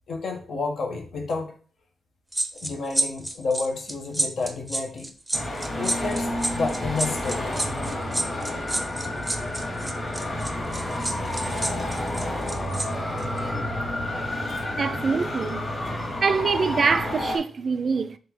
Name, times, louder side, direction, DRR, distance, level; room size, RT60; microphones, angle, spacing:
voice 1, 0.1-1.5 2.6-5.1 5.7-7.7, left 3 dB, 70° left, 0.9 m, -30 dB
sound 1, 2.3-12.9 13.2-13.4, right 1 dB, 10° right, 0.6 m, -29 dB
Traffic noise roadway noise, 5.3-17.4, left 1 dB, 35° left, 1.4 m, -30 dB
voice 2, 14.8-15.6 16.2-18.2, right 5 dB, 50° right, 0.3 m, -24 dB
3.4 x 3.4 x 3.6 m
cardioid pair, 85°, 0 cm